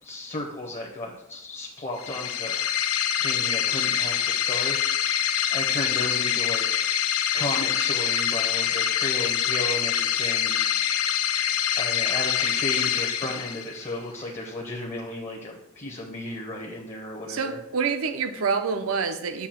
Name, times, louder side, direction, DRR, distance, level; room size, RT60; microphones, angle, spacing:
voice 1, 0.0-2.7 3.2-6.8 7.3-10.6 11.8-17.6, left 2 dB, 30° left, -1 dB, 0.8 m, -34 dB
sound 1, 2.0-13.9, left 9 dB, 80° left, 0.5 m, -25 dB
voice 2, 17.3-19.5, right 5 dB, 75° right, 8 dB, 0.6 m, -27 dB
7.0 x 2.8 x 5.7 m, 0.84 s
head